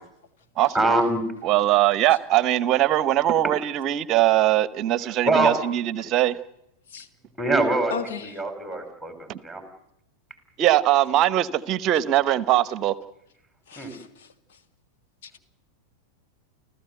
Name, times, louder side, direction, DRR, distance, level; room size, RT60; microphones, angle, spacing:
voice 1, 0.7-1.2 5.2-5.5 7.4-7.9 8.2-9.6 13.8-13.9, right 2 dB, ahead, 6 dB, 4.8 m, -23 dB
voice 2, 1.4-6.4 9.3-9.4 10.6-12.9, right 13 dB, 35° right, 18 dB, 0.9 m, -21 dB
voice 3, 7.9-8.3 13.7-14.3 15.2-15.3, left 6 dB, 55° left, 8 dB, 1.8 m, -34 dB
29.5 x 14.5 x 8.0 m, 0.81 s
figure-of-eight pair, 90°, 0 cm